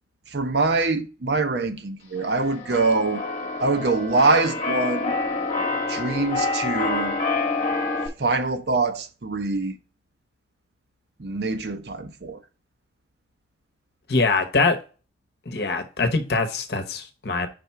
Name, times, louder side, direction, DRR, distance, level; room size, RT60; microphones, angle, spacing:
voice 1, 0.3-3.2 3.6-5.1 5.9-7.2 8.2-9.8 11.2-12.4, right 3 dB, 65° right, 0.7 m, -24 dB
Keyboard (musical), 2.2-8.1, left 3 dB, 40° left, 1.0 m, -27 dB
voice 2, 14.1-14.8 15.5-17.5, left 3 dB, 60° left, 0.8 m, -23 dB
5.2 x 4.1 x 4.5 m
head